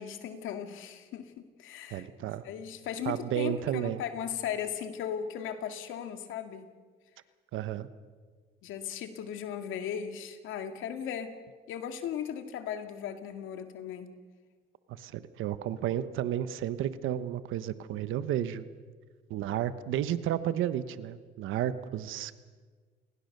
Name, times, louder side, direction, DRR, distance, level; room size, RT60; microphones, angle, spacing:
voice 1, 0.0-2.1 2.4-6.7 8.6-11.3 11.7-14.1, left 8 dB, 90° left, 7 dB, 2.2 m, -37 dB
voice 2, 1.9-2.4 3.0-4.0 7.5-7.9 14.9-18.7 19.3-22.4, right 11 dB, 90° right, 13 dB, 1.2 m, -32 dB
28.5 x 20.0 x 6.7 m, 1.5 s
cardioid pair, 90°, 20 cm